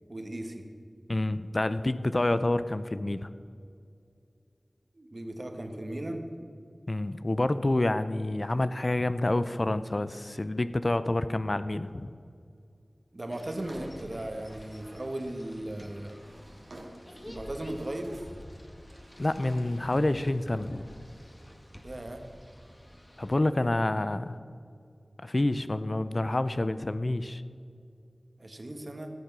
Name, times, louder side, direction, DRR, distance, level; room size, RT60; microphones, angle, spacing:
voice 1, 0.1-0.6 4.9-6.2 13.1-16.1 17.2-18.2 21.8-22.2 28.4-29.1, right 1 dB, 45° right, 5 dB, 1.4 m, -37 dB
voice 2, 1.1-3.3 6.9-12.1 19.2-20.8 23.2-24.4 25.2-27.4, left 2 dB, 40° left, 13 dB, 0.4 m, -28 dB
Drawer open or close, 13.2-15.1 15.9-17.2 17.5-18.5 18.8-19.9, right 1 dB, 85° right, 2.1 m, -52 dB
sound 1, 13.3-23.3, equal, 20° left, 1.6 m, -49 dB
14.5 x 8.2 x 6.1 m, 2.4 s
wide cardioid pair, 70°, 0 cm